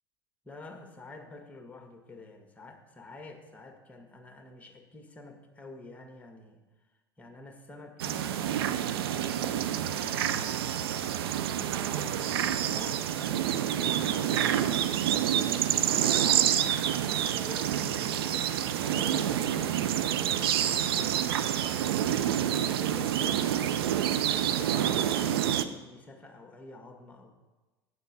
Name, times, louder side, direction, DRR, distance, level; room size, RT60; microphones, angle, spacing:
voice 1, 0.4-6.6 7.2-23.8 24.2-27.4, left 2 dB, 10° left, 4 dB, 1.6 m, -48 dB
sound 1, 8.0-25.6, right 10 dB, 65° right, 0.6 m, -28 dB
9.3 x 7.2 x 5.7 m, 1.2 s
figure-of-eight pair, 75°, 13 cm